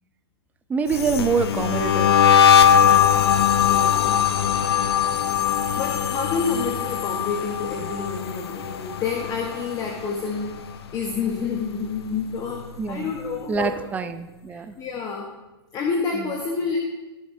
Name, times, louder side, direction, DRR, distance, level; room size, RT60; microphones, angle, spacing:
voice 1, 0.7-2.1 12.8-13.2 13.5-14.7, right 5 dB, 10° right, 9 dB, 0.5 m, -25 dB
sound 1, 0.9-10.1 10.3-10.8 11.1-12.7, left 9 dB, 70° left, 0.7 m, -20 dB
voice 2, 3.6-4.2 5.8-10.5 10.9-13.8 14.5-15.3 15.7-16.8, left 5 dB, 25° left, 1 dB, 1.1 m, -28 dB
15.0 x 7.2 x 2.7 m, 1.1 s
hypercardioid pair, 125°, 14 cm